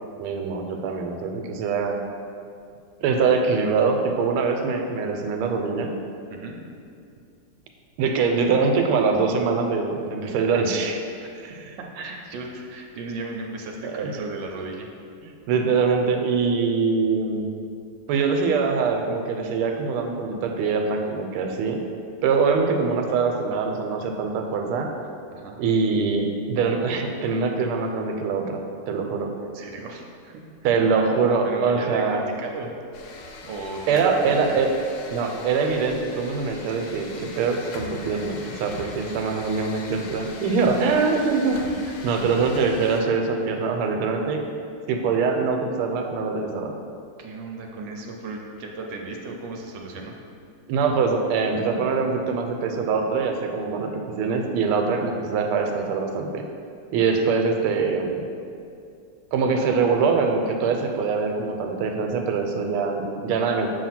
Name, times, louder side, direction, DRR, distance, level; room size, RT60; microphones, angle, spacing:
voice 1, 0.2-2.0 3.0-5.9 8.0-11.0 11.4-11.5 13.8-14.1 15.2-17.5 18.1-21.8 22.2-24.9 25.6-28.6 28.9-29.3 30.6-32.2 33.9-34.7 35.1-44.5 44.9-46.7 50.7-56.4 56.9-58.2 59.3-63.7, right 5 dB, 90° right, 3 dB, 1.5 m, -23 dB
voice 2, 11.9-14.9 25.3-25.6 29.5-30.4 31.4-32.7 33.4-34.6 40.8-41.0 47.2-50.1, right 3 dB, 70° right, 1 dB, 1.2 m, -35 dB
sound 1, 32.9-43.0, left 3 dB, 70° left, 1.2 m, -41 dB
7.2 x 2.8 x 5.7 m, 2.4 s
omnidirectional pair, 2.4 m